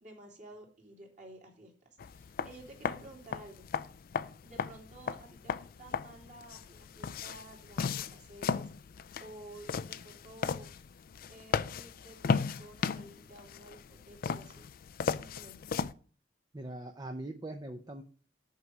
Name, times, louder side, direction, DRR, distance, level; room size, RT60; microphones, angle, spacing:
voice 1, 0.0-3.7 4.4-8.7 9.2-10.7 11.3-14.7 15.1-15.8, right 1 dB, 40° right, 0 dB, 2.6 m, -52 dB
sound 1, 2.0-15.9, left 5 dB, 50° left, 0.4 m, -36 dB
voice 2, 16.5-18.0, right 2 dB, 20° right, 5 dB, 0.6 m, -41 dB
8.1 x 4.8 x 6.2 m, 0.41 s
head